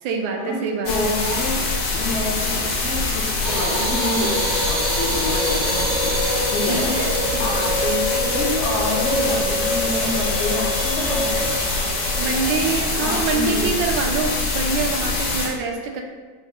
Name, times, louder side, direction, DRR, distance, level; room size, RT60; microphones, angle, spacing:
voice 1, 0.0-1.1 6.7-7.7 12.2-16.0, right 5 dB, 80° right, 3 dB, 1.4 m, -26 dB
sound 1, 0.9-15.5, left 3 dB, 85° left, 1.9 m, -24 dB
voice 2, 0.9-1.6 1.9-6.1 6.5-7.1 7.4-11.5 13.0-13.7, left 2 dB, 65° left, -2 dB, 0.7 m, -27 dB
sound 2, 3.4-13.2, right 1 dB, 60° right, 1.0 m, -27 dB
5.2 x 2.1 x 4.7 m, 1.4 s
omnidirectional pair, 2.3 m